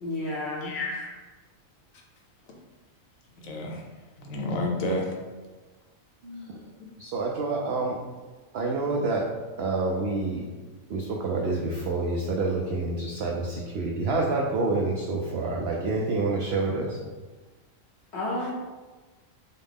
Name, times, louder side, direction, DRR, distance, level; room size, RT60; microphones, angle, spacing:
voice 1, 0.0-0.8 18.1-18.5, left 1 dB, 60° left, -3 dB, 0.8 m, -31 dB
voice 2, 0.6-1.2 3.4-3.8 4.2-5.2 18.4-18.5, left 1 dB, 75° left, 0 dB, 1.2 m, -30 dB
voice 3, 6.2-6.6 7.0-8.0 8.5-9.3 9.6-10.4 10.9-17.0, right 3 dB, 65° right, -2 dB, 0.6 m, -28 dB
5.5 x 2.0 x 3.4 m, 1.3 s
omnidirectional pair, 1.4 m